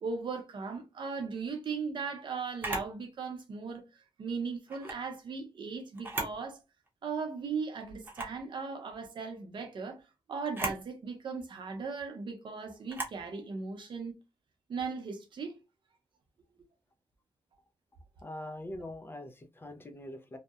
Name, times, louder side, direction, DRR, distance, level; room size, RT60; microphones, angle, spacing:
voice 1, 0.0-3.8 4.2-6.6 7.0-10.0 10.3-14.1 14.7-15.5, right 5 dB, 60° right, 0.6 m, -37 dB
Camera, 2.6-2.9 4.7-5.0 5.9-6.4 6.9-7.0 8.0-8.4 10.4-10.8 12.9-13.2, right 2 dB, 20° right, 0.7 m, -37 dB
voice 2, 18.2-20.4, left 1 dB, 25° left, 0.3 m, -43 dB
2.7 x 2.0 x 2.3 m
wide cardioid pair, 155°, 9 cm